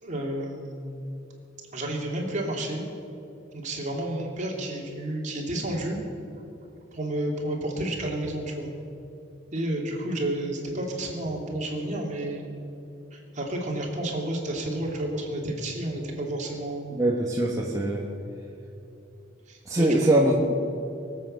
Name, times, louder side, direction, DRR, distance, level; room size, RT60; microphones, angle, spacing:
voice 1, 0.0-0.9 1.7-2.8 3.5-6.0 6.9-8.7 9.5-12.4 13.1-16.9 19.5-20.0, right 1 dB, 40° right, -1 dB, 2.8 m, -31 dB
voice 2, 16.9-18.0 19.7-20.6, right 1 dB, 20° right, -3 dB, 1.4 m, -22 dB
23.5 x 8.1 x 6.5 m, 2.7 s
head